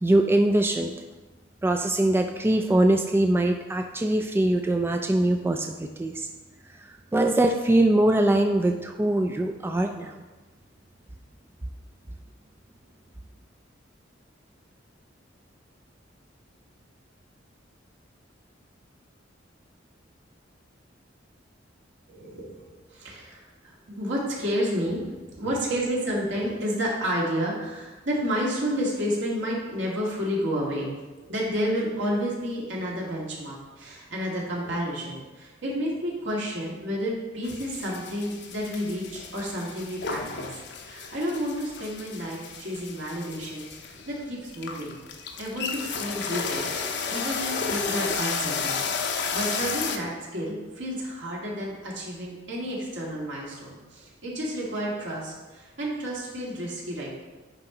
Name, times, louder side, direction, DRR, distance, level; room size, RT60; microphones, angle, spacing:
voice 1, 0.0-0.9 1.6-6.3 7.1-10.2, right 1 dB, 10° right, 4 dB, 0.3 m, -22 dB
voice 2, 22.1-22.5 22.9-31.0 31.3-40.5 40.8-45.0 45.4-57.1, equal, 70° right, -4 dB, 2.3 m, -31 dB
sound 1, 37.4-50.0, left 5 dB, 65° left, 0.7 m, -33 dB
9.9 x 4.7 x 3.9 m, 1.2 s
head